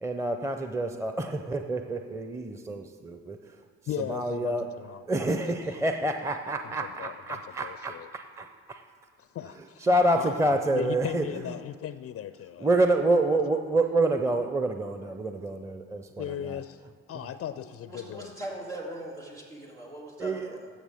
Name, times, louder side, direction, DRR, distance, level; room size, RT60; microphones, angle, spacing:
voice 1, 0.0-3.4 3.8-4.7 5.1-8.8 9.4-11.6 12.6-16.6 17.1-17.3 20.2-20.7, right 2 dB, 10° right, 6 dB, 0.6 m, -28 dB
voice 2, 3.9-5.1 5.4-5.8 6.6-8.1 9.2-9.9 10.1-10.5 10.7-12.7 16.2-16.8 17.1-18.3, left 10 dB, 45° left, 13 dB, 0.4 m, -37 dB
voice 3, 17.6-20.6, right 1 dB, 85° right, -5 dB, 2.1 m, -40 dB
15.5 x 6.2 x 3.6 m, 2.1 s
hypercardioid pair, 45°, 34 cm